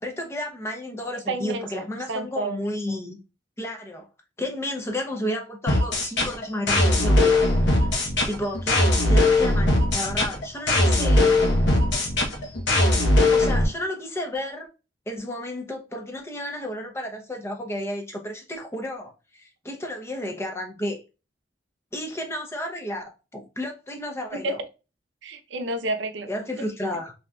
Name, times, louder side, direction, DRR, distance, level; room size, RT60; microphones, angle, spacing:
voice 1, 0.0-3.2 3.6-4.1 4.4-7.9 8.3-11.5 13.3-14.7 15.1-21.0 21.9-24.6 26.3-27.1, left 1 dB, 15° left, 0.6 m, -32 dB
voice 2, 1.3-2.6 24.4-24.5 25.2-26.3, right 2 dB, 75° right, 0.6 m, -30 dB
sound 1, 5.7-13.7, left 2 dB, 75° left, 0.9 m, -20 dB
3.7 x 2.8 x 2.2 m
head